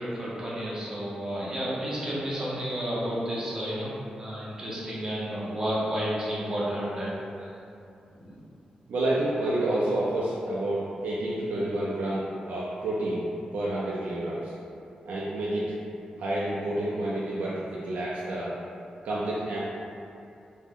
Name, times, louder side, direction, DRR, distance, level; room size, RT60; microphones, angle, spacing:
voice 1, 0.0-7.5 8.1-8.4, equal, 25° right, -8 dB, 0.6 m, -31 dB
voice 2, 8.9-13.3 13.5-14.5 15.1-15.7 16.2-18.5 19.0-19.6, right 1 dB, 75° right, -7 dB, 0.4 m, -29 dB
2.5 x 2.0 x 3.5 m, 2.6 s
wide cardioid pair, 175°, 3 cm